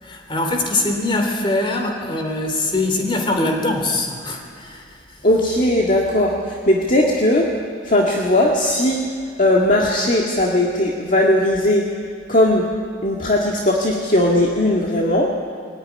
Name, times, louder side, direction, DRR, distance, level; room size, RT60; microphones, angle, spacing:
voice 1, 0.0-5.3, left 2 dB, 30° left, 3 dB, 3.3 m, -23 dB
voice 2, 5.2-7.5 7.8-9.0 9.4-11.8 12.3-12.6 13.0-15.3, left 1 dB, 45° left, -2 dB, 2.0 m, -18 dB
22.5 x 15.0 x 9.8 m, 2.2 s
head